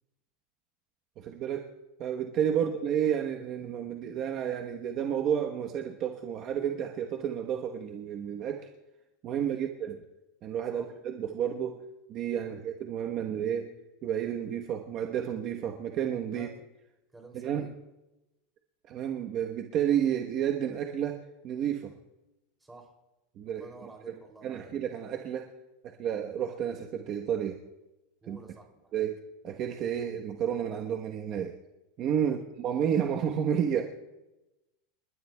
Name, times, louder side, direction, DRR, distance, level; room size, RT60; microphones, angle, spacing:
voice 1, 1.2-1.7 2.0-8.7 9.2-10.0 10.4-11.8 12.1-13.7 14.0-16.5 17.3-17.7 18.9-21.9 23.4-23.7 24.1-24.2 24.4-25.5 25.8-27.6 28.3-28.4 28.9-31.6 32.0-33.8, right 9 dB, 40° right, 2 dB, 1.1 m, -31 dB
voice 2, 9.3-9.7 10.7-10.9 12.4-12.6 16.3-16.5 17.1-17.7 21.8-22.0 22.6-22.9 23.5-24.8 28.2-29.0 32.2-32.4, right 2 dB, 10° right, 1 dB, 2.9 m, -51 dB
29.0 x 12.5 x 2.3 m, 0.98 s
supercardioid pair, 150°, 0 cm